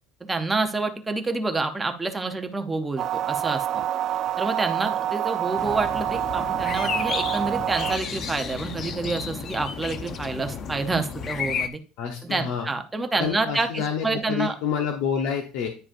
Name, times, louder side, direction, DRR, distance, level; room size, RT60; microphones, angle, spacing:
voice 1, 0.2-3.7 4.4-11.8 12.2-14.5, right 3 dB, 10° right, 5 dB, 0.7 m, -28 dB
sound 1, 3.0-8.0, right 11 dB, 40° right, 0.3 m, -27 dB
sound 2, 5.6-11.7, left 6 dB, 35° left, 0.6 m, -32 dB
voice 2, 12.0-12.7 13.2-15.7, left 7 dB, 70° left, 3 dB, 0.9 m, -28 dB
9.9 x 4.9 x 2.5 m, 0.36 s
cardioid pair, 145°, 0 cm